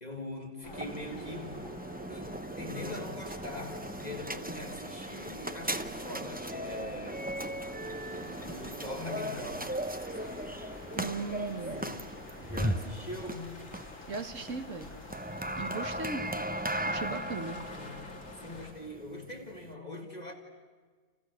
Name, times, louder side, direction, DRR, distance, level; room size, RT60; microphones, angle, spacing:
voice 1, 0.0-1.7 2.1-7.3 8.1-9.8 10.1-10.7 11.8-12.1 12.4-13.6 17.7-20.3, left 1 dB, 30° left, 3 dB, 2.3 m, -42 dB
sound 1, 0.6-18.7, left 2 dB, 70° left, 2.7 m, -48 dB
sound 2, 0.7-19.7, right 1 dB, 10° right, 0.7 m, -37 dB
sound 3, 7.8-17.2, left 1 dB, 10° left, 3.2 m, -55 dB
voice 2, 11.0-12.0 14.1-14.9 15.6-16.2 16.9-17.6, right 4 dB, 70° right, 7 dB, 2.0 m, -37 dB
30.0 x 29.5 x 6.7 m, 1.5 s
omnidirectional pair, 1.4 m